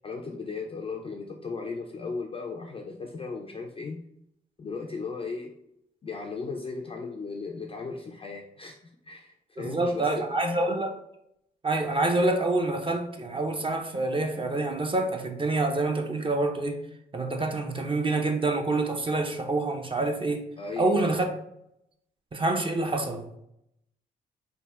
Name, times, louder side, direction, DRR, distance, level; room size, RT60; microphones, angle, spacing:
voice 1, 0.0-4.0 4.6-5.5 6.0-10.6 20.6-21.2, left 4 dB, 30° left, 0 dB, 0.4 m, -36 dB
voice 2, 9.6-10.9 11.6-16.8 17.1-20.4 20.8-21.3 22.3-23.2, right 2 dB, 25° right, 3 dB, 0.5 m, -27 dB
3.4 x 2.1 x 2.2 m, 0.77 s
hypercardioid pair, 45°, 20 cm